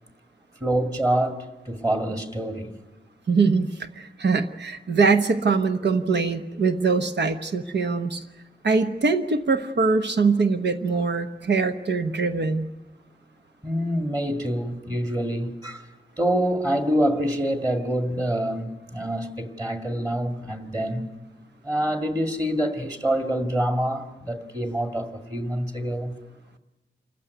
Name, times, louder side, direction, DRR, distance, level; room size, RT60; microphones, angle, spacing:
voice 1, 0.6-2.8 13.6-15.8 16.2-21.1 21.6-26.1, right 1 dB, 20° right, 4 dB, 2.1 m, -26 dB
voice 2, 3.3-8.2 8.6-12.7, right 4 dB, 75° right, 7 dB, 1.1 m, -23 dB
26.5 x 15.0 x 9.5 m, 1.1 s
wide cardioid pair, 130°, 18 cm